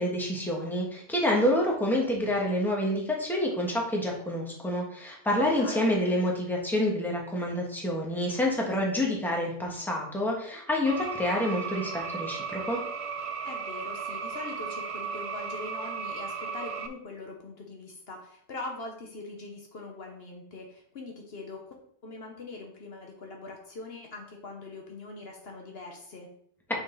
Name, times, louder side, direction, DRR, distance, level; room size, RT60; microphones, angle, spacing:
voice 1, 0.0-12.8, left 1 dB, ahead, -2 dB, 1.4 m, -28 dB
voice 2, 5.5-5.9 13.4-21.8 22.0-26.3, left 3 dB, 60° left, 1 dB, 1.2 m, -42 dB
sound 1, 10.9-16.9, right 5 dB, 50° right, 0.4 m, -35 dB
5.8 x 5.1 x 3.9 m, 0.64 s
omnidirectional pair, 1.2 m